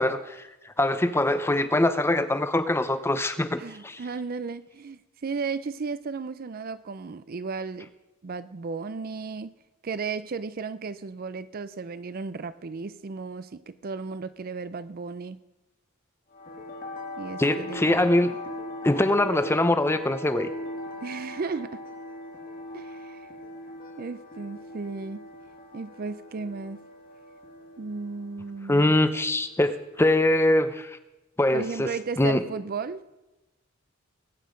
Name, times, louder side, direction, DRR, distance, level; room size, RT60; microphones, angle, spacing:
voice 1, 0.0-4.0 17.4-18.3 18.8-20.5 28.7-31.0 31.4-32.4, left 1 dB, 10° left, 11 dB, 0.6 m, -23 dB
voice 2, 3.6-7.9 8.2-9.6 9.8-15.4 17.2-18.3 21.0-21.8 22.7-23.3 24.0-25.3 25.7-26.8 27.8-29.0 31.5-33.0, right 4 dB, 40° right, 14 dB, 0.4 m, -35 dB
sound 1, 16.3-30.4, left 1 dB, 40° left, 1.9 m, -40 dB
20.5 x 9.0 x 5.1 m, 1.0 s
head